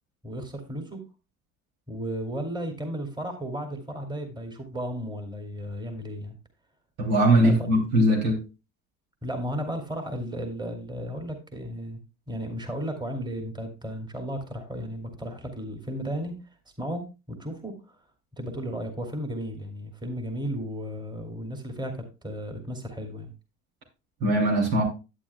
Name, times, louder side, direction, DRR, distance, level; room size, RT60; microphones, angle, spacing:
voice 1, 0.2-1.0 1.9-6.4 7.4-7.7 9.2-12.0 12.3-16.4 16.8-18.0 18.4-23.3, equal, 10° right, 4 dB, 2.4 m, -34 dB
voice 2, 7.0-8.4 24.2-24.8, right 1 dB, 60° right, 1 dB, 3.0 m, -21 dB
11.0 x 9.0 x 2.3 m, 0.29 s
hypercardioid pair, 70°, 40 cm